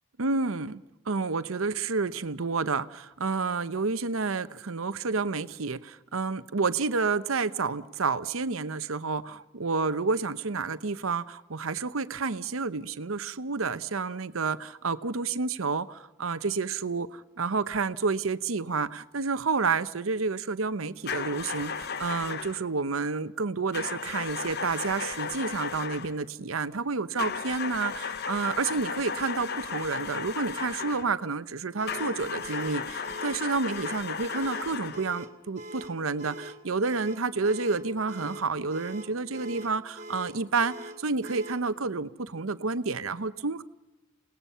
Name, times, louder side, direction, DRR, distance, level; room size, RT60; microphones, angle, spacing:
voice 1, 0.2-43.6, right 4 dB, 80° right, 13 dB, 0.9 m, -30 dB
sound 1, 21.1-22.6 23.7-26.2 27.2-31.1 31.9-35.1, left 6 dB, 55° left, 0.9 m, -35 dB
sound 2, 31.8-41.7, right 1 dB, 35° right, 2.4 m, -43 dB
30.0 x 18.5 x 5.6 m, 0.94 s
head